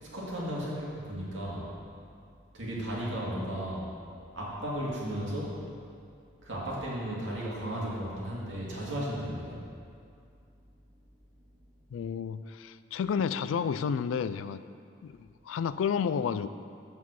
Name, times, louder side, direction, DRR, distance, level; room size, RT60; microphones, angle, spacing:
voice 1, 0.0-1.7 2.5-3.9 4.3-5.6 6.4-9.6, equal, 80° right, -6 dB, 2.1 m, -35 dB
voice 2, 11.9-14.6 15.0-16.5, left 7 dB, 90° left, 14 dB, 0.3 m, -31 dB
7.2 x 5.7 x 6.2 m, 2.4 s
head